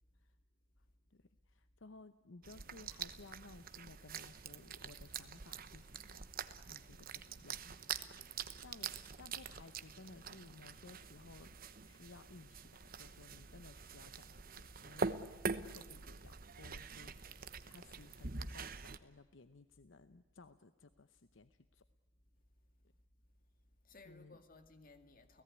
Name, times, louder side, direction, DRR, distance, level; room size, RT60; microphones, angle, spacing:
voice 1, 1.1-6.2 6.7-7.7 8.6-11.5 11.8-15.4 15.7-17.3 17.7-21.9 24.0-24.4, left 3 dB, 60° left, 0.8 m, -58 dB
sound 1, 2.4-19.0, right 5 dB, 45° right, 1.0 m, -45 dB
voice 2, 23.6-25.4, left 3 dB, 40° left, 2.1 m, -61 dB
29.5 x 17.5 x 9.7 m
head